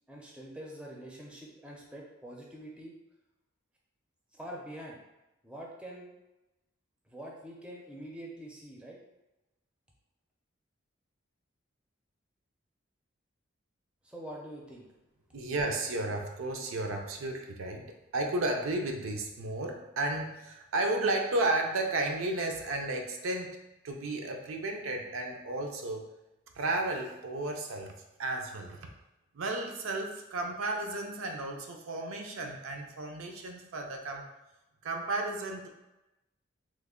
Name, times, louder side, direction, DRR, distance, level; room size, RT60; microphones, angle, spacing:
voice 1, 0.1-3.0 4.3-5.0 5.4-6.1 7.1-9.0 14.0-14.9, right 1 dB, 5° right, -2 dB, 0.4 m, -45 dB
voice 2, 15.3-23.6 23.8-26.1 26.6-28.9 29.3-34.2 34.8-35.7, right 2 dB, 85° right, 2 dB, 0.5 m, -33 dB
3.1 x 2.1 x 3.6 m, 0.98 s
head